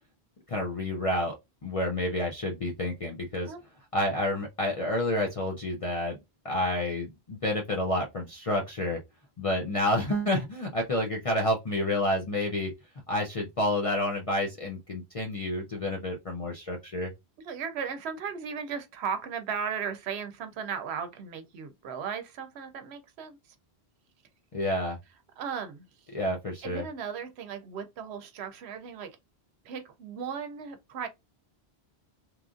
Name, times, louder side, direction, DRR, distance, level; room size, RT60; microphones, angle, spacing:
voice 1, 0.5-1.3 1.6-3.5 3.9-6.2 6.4-9.0 9.4-12.7 13.1-17.1 24.5-25.0 26.1-26.9, left 1 dB, 45° left, 0.5 m, -29 dB
voice 2, 17.4-23.4 25.4-25.9 26.6-29.1 29.6-31.1, right 6 dB, 85° right, 0.8 m, -36 dB
3.0 x 2.4 x 2.5 m
omnidirectional pair, 1.1 m